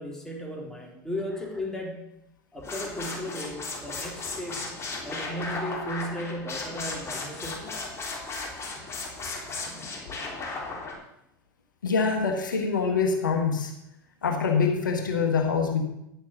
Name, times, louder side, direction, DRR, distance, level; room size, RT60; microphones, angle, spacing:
voice 1, 0.0-2.1 2.5-4.7 5.0-7.7, equal, 5° left, -1 dB, 3.2 m, -35 dB
sound 1, 2.6-10.9, left 3 dB, 25° left, 3.5 m, -35 dB
voice 2, 11.8-13.7 14.2-15.8, left 5 dB, 85° left, 3 dB, 1.5 m, -25 dB
10.5 x 6.9 x 6.1 m, 0.82 s
hypercardioid pair, 85°, 10 cm